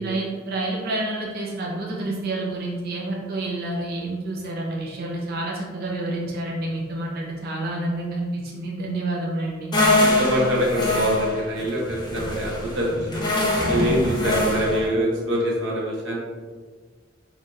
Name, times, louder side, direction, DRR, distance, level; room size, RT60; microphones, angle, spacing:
voice 1, 0.0-9.8, right 2 dB, 55° right, -3 dB, 0.5 m, -29 dB
sound 1, 9.7-14.9, left 2 dB, 25° left, 0.6 m, -23 dB
voice 2, 10.0-13.2 13.7-16.2, equal, 70° right, -4 dB, 1.0 m, -24 dB
4.2 x 2.7 x 2.4 m, 1.5 s
head